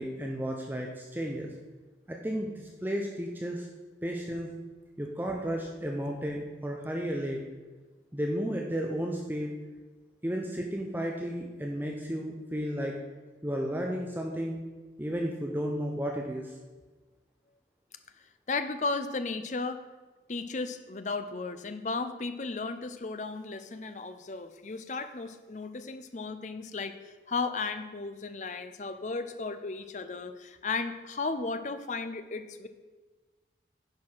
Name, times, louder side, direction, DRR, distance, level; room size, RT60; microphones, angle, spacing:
voice 1, 0.0-1.5 2.1-3.7 4.0-4.5 5.0-7.4 8.1-9.5 10.2-13.0 13.4-14.6 15.0-16.6, equal, 10° right, 0 dB, 0.6 m, -33 dB
voice 2, 18.5-19.8 20.3-32.7, left 3 dB, 40° left, 10 dB, 0.5 m, -35 dB
10.5 x 4.8 x 5.6 m, 1.3 s
head